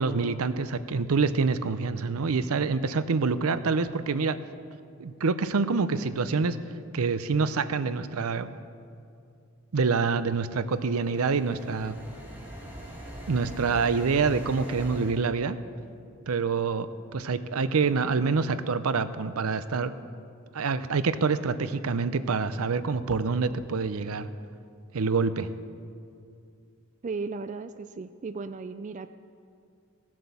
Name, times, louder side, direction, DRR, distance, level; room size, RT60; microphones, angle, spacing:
voice 1, 0.0-4.4 5.0-6.6 6.9-8.5 9.7-12.0 13.3-15.6 16.3-16.9 17.1-19.9 20.5-24.3 24.9-25.5, right 4 dB, 80° right, 13 dB, 0.6 m, -26 dB
sound 1, 10.5-15.2, equal, 10° right, 2.2 m, -42 dB
voice 2, 27.0-29.1, right 4 dB, 35° right, 11 dB, 0.3 m, -35 dB
16.5 x 7.6 x 7.0 m, 2.4 s
head